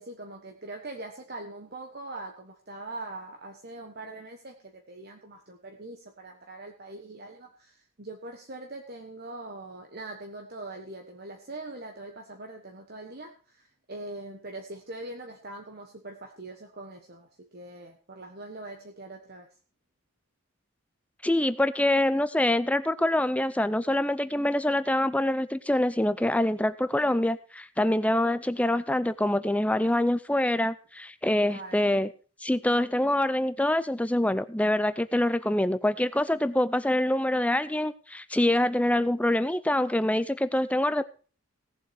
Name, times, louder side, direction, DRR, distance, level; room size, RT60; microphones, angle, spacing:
voice 1, 0.0-19.5 31.4-31.9, right 2 dB, 45° right, 3 dB, 1.3 m, -42 dB
voice 2, 21.2-32.1 32.4-41.0, left 1 dB, 5° left, 14 dB, 0.5 m, -25 dB
17.0 x 7.6 x 4.9 m, 0.39 s
head